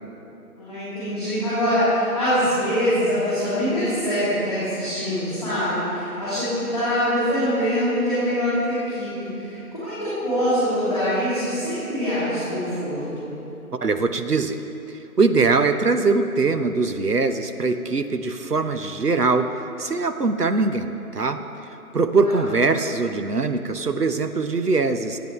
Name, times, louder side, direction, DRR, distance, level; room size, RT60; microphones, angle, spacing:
voice 1, 0.6-13.4 22.2-22.4, equal, ahead, -14 dB, 2.3 m, -24 dB
voice 2, 13.8-14.6 15.2-19.5 19.8-21.4 21.9-25.2, right 3 dB, 85° right, 8 dB, 1.0 m, -22 dB
24.5 x 9.2 x 3.2 m, 2.9 s
figure-of-eight pair, 170°, 46 cm